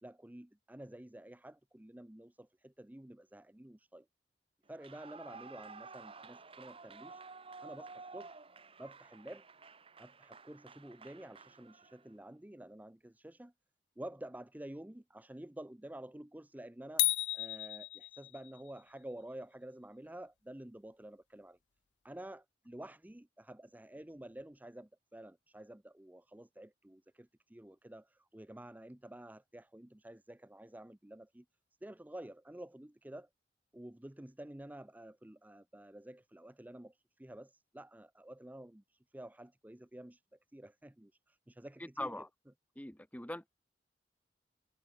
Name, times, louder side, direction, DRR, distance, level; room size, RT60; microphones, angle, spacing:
voice 1, 0.0-4.1 4.7-7.2 7.6-8.4 8.8-9.4 10.0-13.5 14.0-17.1 17.3-21.6 22.0-31.5 31.8-33.3 33.7-42.2, right 1 dB, 10° right, 0.5 m, -50 dB
Clapping / Cheering / Applause, 4.7-12.1, right 4 dB, 30° right, 1.8 m, -52 dB
sound 1, 17.0-18.6, left 19 dB, 80° left, 0.6 m, -33 dB
voice 2, 42.0-42.3 42.8-43.5, left 1 dB, 10° left, 1.2 m, -41 dB
head